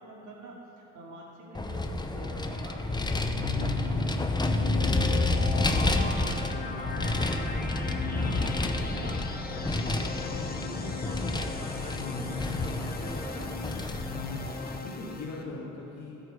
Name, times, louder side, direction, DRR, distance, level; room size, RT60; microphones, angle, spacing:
voice 1, 0.0-5.0 5.3-11.9 12.3-13.6, right 2 dB, 75° right, -3 dB, 2.4 m, -46 dB
Vehicle, 1.5-14.8, left 2 dB, 15° left, 0.7 m, -30 dB
sound 1, 2.9-15.4, left 5 dB, 30° left, 1.0 m, -38 dB
voice 2, 3.4-3.9 4.5-5.8 12.0-12.3 14.2-14.5 14.8-16.3, left 3 dB, 70° left, -8 dB, 2.1 m, -42 dB
12.5 x 8.2 x 5.1 m, 2.9 s
cardioid pair, 90°, 30 cm